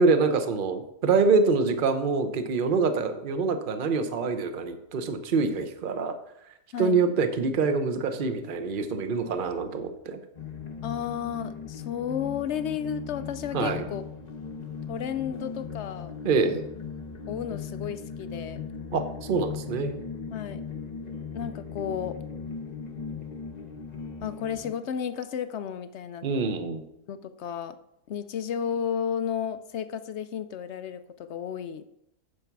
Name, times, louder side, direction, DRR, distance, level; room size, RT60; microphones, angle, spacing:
voice 1, 0.0-6.2 6.8-10.2 13.5-13.8 16.2-16.6 18.9-20.0 26.2-26.8, right 4 dB, 40° right, 8 dB, 0.9 m, -25 dB
sound 1, 10.3-24.7, left 6 dB, 35° left, 0.8 m, -38 dB
voice 2, 10.8-14.0 14.9-16.1 17.3-18.6 20.3-20.6 21.3-22.2 24.2-26.3 27.1-27.8 28.1-31.9, left 8 dB, 65° left, 11 dB, 0.7 m, -32 dB
9.9 x 7.0 x 4.6 m, 0.80 s
omnidirectional pair, 1.6 m